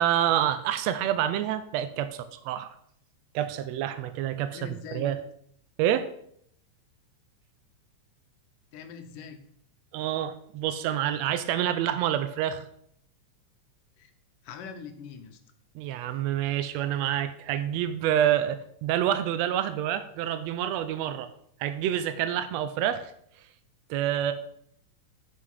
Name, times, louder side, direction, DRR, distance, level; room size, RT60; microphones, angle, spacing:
voice 1, 0.0-2.7 3.3-4.6 4.9-5.2 5.8-6.1 9.9-12.7 15.7-21.3 21.6-23.1 23.9-24.3, right 11 dB, 90° right, 11 dB, 1.5 m, -27 dB
voice 2, 4.5-5.2 8.7-9.4 14.0-14.1 14.4-15.4, left 6 dB, 85° left, 7 dB, 2.5 m, -42 dB
7.9 x 6.2 x 5.5 m, 0.67 s
omnidirectional pair, 3.6 m